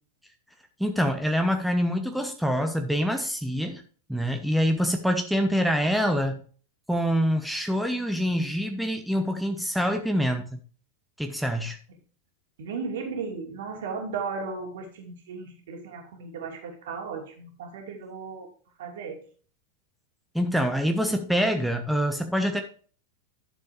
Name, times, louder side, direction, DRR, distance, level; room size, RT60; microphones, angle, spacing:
voice 1, 0.8-3.8 4.1-6.4 6.9-10.6 11.2-11.8 20.3-22.6, equal, ahead, 5 dB, 1.0 m, -25 dB
voice 2, 12.6-18.5 18.8-19.2, right 5 dB, 55° right, 1 dB, 2.8 m, -35 dB
12.0 x 7.0 x 3.2 m, 0.43 s
figure-of-eight pair, 90°, 0 cm